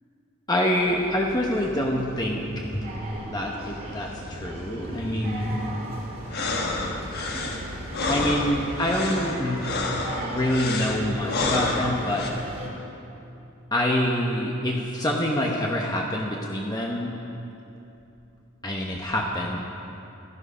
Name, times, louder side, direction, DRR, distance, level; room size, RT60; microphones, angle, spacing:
voice 1, 0.5-5.6 8.1-9.6 10.2-12.3 13.7-17.1 18.6-19.6, left 1 dB, 20° left, -1 dB, 0.9 m, -26 dB
sound 1, 0.8-12.7, right 1 dB, 45° right, 2.3 m, -37 dB
sound 2, 6.2-12.3, left 3 dB, 45° left, 1.4 m, -29 dB
15.0 x 12.5 x 5.5 m, 2.9 s
head